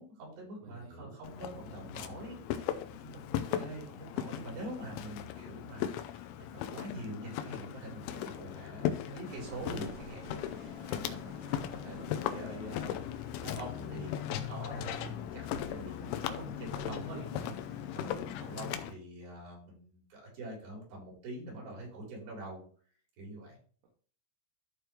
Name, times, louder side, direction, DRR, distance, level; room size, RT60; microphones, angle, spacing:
voice 1, 0.0-13.1 13.4-17.2 17.9-22.6 23.2-23.6, right 1 dB, 60° right, -3 dB, 6.0 m, -45 dB
voice 2, 0.6-1.2 16.8-17.6, right 4 dB, 85° right, -3 dB, 4.3 m, -47 dB
Walk footsteps, 1.2-18.9, left 11 dB, 85° left, 3.0 m, -38 dB
sound 1, 9.2-18.8, right 2 dB, 45° right, 1.3 m, -53 dB
13.5 x 4.7 x 3.3 m, 0.44 s
omnidirectional pair, 5.6 m